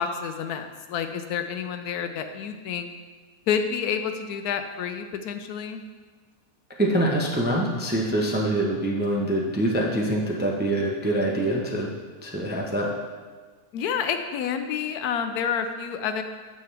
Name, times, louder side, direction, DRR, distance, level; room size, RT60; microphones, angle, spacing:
voice 1, 0.0-2.9 3.5-5.8 13.7-16.2, left 7 dB, 75° left, 8 dB, 1.1 m, -29 dB
voice 2, 6.8-11.9 12.2-12.9, right 1 dB, 10° right, -1 dB, 0.5 m, -25 dB
9.1 x 6.8 x 3.3 m, 1.4 s
omnidirectional pair, 1.7 m